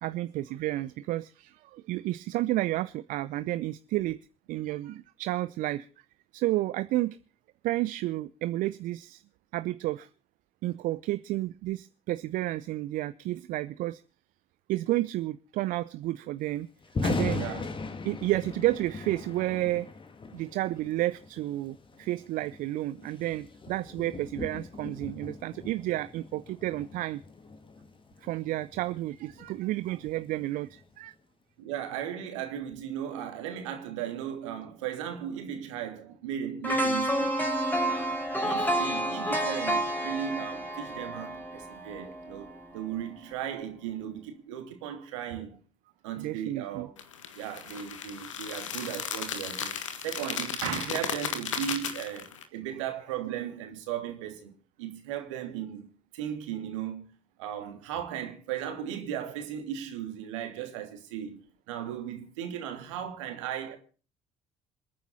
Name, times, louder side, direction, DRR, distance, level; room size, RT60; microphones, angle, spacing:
voice 1, 0.0-4.2 4.5-5.9 6.3-7.2 7.6-9.2 9.5-10.1 10.6-14.0 14.7-16.7 17.0-17.5 18.0-19.9 20.3-27.2 28.2-31.1 46.2-46.9, right 16 dB, 60° right, 0.7 m, -31 dB
Thunder, 16.8-31.0, left 3 dB, 30° left, 2.3 m, -39 dB
voice 2, 17.4-17.7 31.6-37.4 37.8-45.6 46.0-47.0 47.3-55.9 56.1-57.0 57.4-61.4 61.7-63.8, right 10 dB, 75° right, 2.9 m, -36 dB
sound 1, 36.6-42.7 43.0-43.2, right 1 dB, 10° left, 4.6 m, -30 dB
sound 2, 47.0-52.4, left 7 dB, 80° left, 1.6 m, -35 dB
27.5 x 9.6 x 4.2 m
figure-of-eight pair, 50°, 16 cm